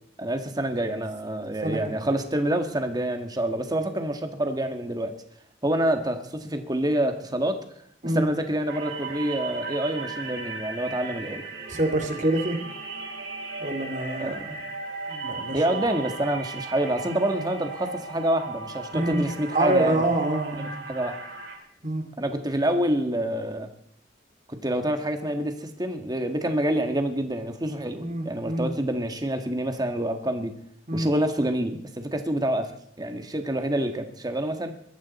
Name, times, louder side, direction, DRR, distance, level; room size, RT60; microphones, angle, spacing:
voice 1, 0.2-5.1 5.6-7.6 8.0-11.5 14.2-14.6 15.5-20.0 20.6-21.2 22.2-23.7 24.5-30.5 30.9-34.7, right 1 dB, 20° right, 6 dB, 1.7 m, -27 dB
voice 2, 1.6-2.0 8.0-8.3 11.7-12.6 13.6-14.5 15.1-15.6 18.9-19.2 19.5-20.7 21.8-22.0 28.0-28.7 30.9-31.1, right 1 dB, 40° right, 5 dB, 2.4 m, -26 dB
sound 1, 8.7-21.6, right 3 dB, 85° right, 5.6 m, -36 dB
22.0 x 13.5 x 4.3 m, 0.68 s
head